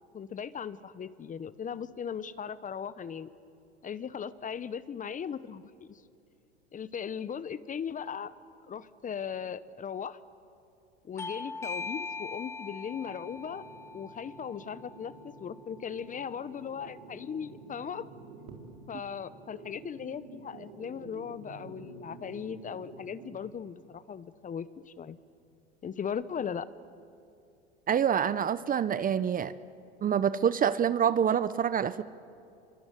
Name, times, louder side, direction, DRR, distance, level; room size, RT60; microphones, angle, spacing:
voice 1, 0.1-3.3 3.8-6.0 6.7-8.3 8.7-10.2 11.0-13.6 13.9-18.1 18.9-25.2 25.8-26.7, left 7 dB, 25° left, 16 dB, 1.0 m, -38 dB
Bell / Doorbell, 11.2-16.4, left 3 dB, 10° left, 0.6 m, -42 dB
sound 1, 12.9-23.4, right 4 dB, 75° right, 4.1 m, -50 dB
voice 2, 27.9-29.5 30.0-32.0, right 8 dB, 25° right, 15 dB, 0.8 m, -26 dB
27.0 x 23.5 x 9.3 m, 2.6 s
hypercardioid pair, 100°, 32 cm